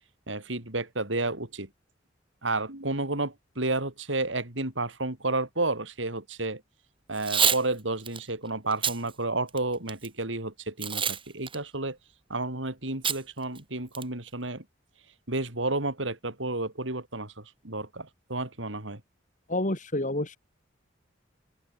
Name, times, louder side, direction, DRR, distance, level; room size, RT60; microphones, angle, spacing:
voice 1, 0.3-1.7 2.4-6.6 7.1-12.0 12.3-14.6 15.3-17.3 17.6-19.0, right 2 dB, 85° right, 5.3 m, -31 dB
Packing tape duct tape / Tearing, 7.1-7.6 8.1-8.2 8.7-9.0 9.5-10.1 10.8-11.2 11.5-11.6 13.0-13.2 13.6-13.7 13.9-14.3, right 7 dB, 30° right, 4.1 m, -26 dB
voice 2, 19.5-20.4, left 1 dB, 45° left, 3.8 m, -28 dB
open air
head